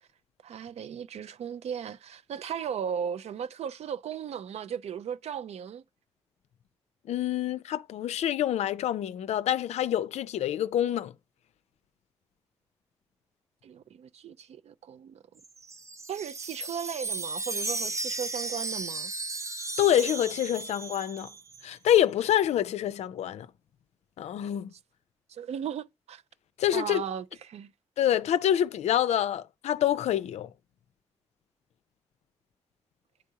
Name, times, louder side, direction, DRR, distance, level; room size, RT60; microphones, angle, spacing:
voice 1, 0.4-5.8 13.6-15.2 16.1-19.1 24.7-24.8 25.3-26.2 26.7-27.7, right 8 dB, 70° right, 0.5 m, -36 dB
voice 2, 7.1-11.1 19.8-21.3 21.6-23.5 24.2-24.7 26.6-27.0 28.0-30.5, left 11 dB, 80° left, 0.4 m, -26 dB
Wind chime, 15.4-21.6, right 3 dB, 25° right, 0.6 m, -35 dB
10.0 x 3.5 x 2.8 m
supercardioid pair, 40°, 11 cm